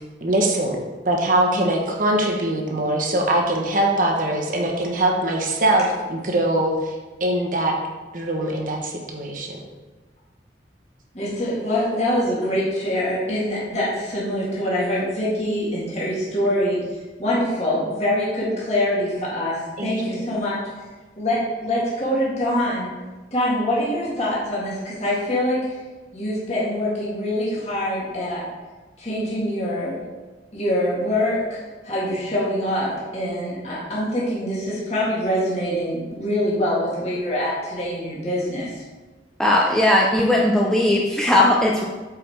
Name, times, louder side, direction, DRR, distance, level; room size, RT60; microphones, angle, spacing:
voice 1, 0.2-0.8 1.0-6.9 7.2-7.7 8.1-9.6 19.8-20.2, right 1 dB, 50° right, 0 dB, 1.1 m, -22 dB
voice 2, 11.1-16.8 17.2-20.6 21.2-22.9 23.3-25.8 26.1-28.4 29.0-30.0 30.5-31.6 31.8-38.8, left 1 dB, 35° left, -8 dB, 1.9 m, -24 dB
voice 3, 39.4-41.9, left 1 dB, 5° left, -3 dB, 0.5 m, -18 dB
8.3 x 4.7 x 3.5 m, 1.3 s
head